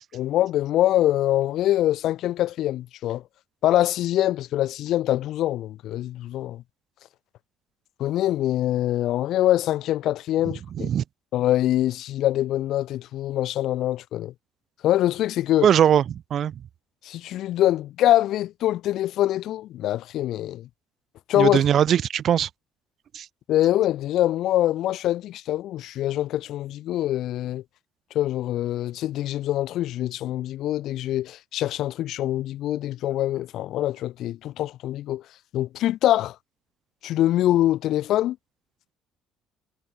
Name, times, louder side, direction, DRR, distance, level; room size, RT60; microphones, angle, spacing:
voice 1, 0.1-3.2 3.6-6.6 8.0-10.9 11.3-14.3 14.8-15.7 17.0-20.7 21.3-21.6 23.5-27.6 28.1-35.2 35.5-36.3 37.0-38.4, left 13 dB, 70° left, 1.3 m, -24 dB
voice 2, 15.6-16.5 21.4-22.5 23.1-23.3, right 9 dB, 55° right, 1.3 m, -20 dB
cardioid pair, 95°, 0 cm